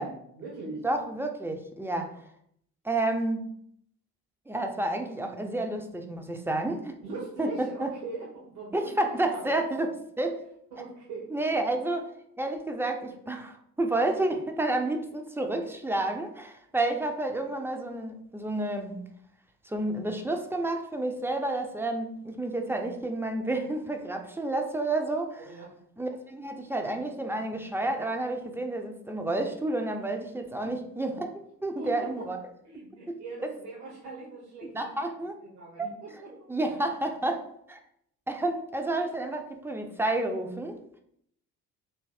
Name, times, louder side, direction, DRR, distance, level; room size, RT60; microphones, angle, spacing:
voice 1, 0.0-0.8 7.0-9.6 10.7-11.3 25.4-25.7 31.8-32.2 32.6-36.5, right 3 dB, 70° right, 1.4 m, -41 dB
voice 2, 0.8-2.2 2.8-3.5 4.5-7.0 7.4-7.9 8.7-10.5 11.3-12.1 12.4-19.0 19.6-25.5 26.0-32.4 33.4-33.5 34.7-35.4 36.5-37.8 38.3-40.8, right 2 dB, 5° right, 0.4 m, -30 dB
3.4 x 3.0 x 4.2 m
figure-of-eight pair, 45°, 46 cm